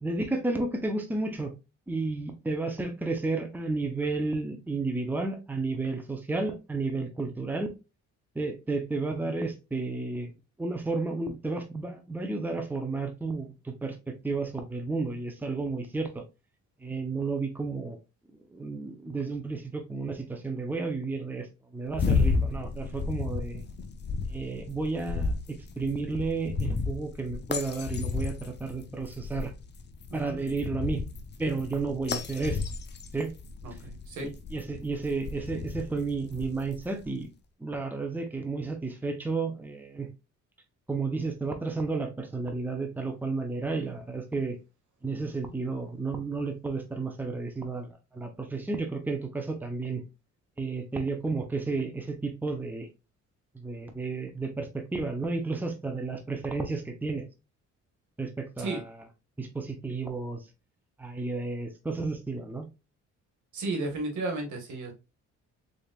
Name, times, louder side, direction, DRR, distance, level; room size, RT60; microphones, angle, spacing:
voice 1, 0.0-1.5 1.9-7.7 8.3-10.3 10.6-16.2 16.8-18.0 18.5-21.5 21.7-23.6 24.3-29.5 30.1-31.1 31.4-32.6 33.1-33.3 34.2-37.3 37.6-40.1 40.9-44.6 45.0-50.0 50.6-52.9 53.5-57.3 58.2-58.9 59.4-60.5 61.0-62.7, right 3 dB, 5° right, 5 dB, 0.7 m, -32 dB
sound 1, 21.9-37.1, left 4 dB, 35° left, 0.6 m, -33 dB
voice 2, 30.1-30.4 33.6-34.3 58.6-58.8 63.5-64.9, right 2 dB, 75° right, 3 dB, 1.5 m, -33 dB
3.9 x 3.5 x 2.3 m, 0.27 s
cardioid pair, 90°, 30 cm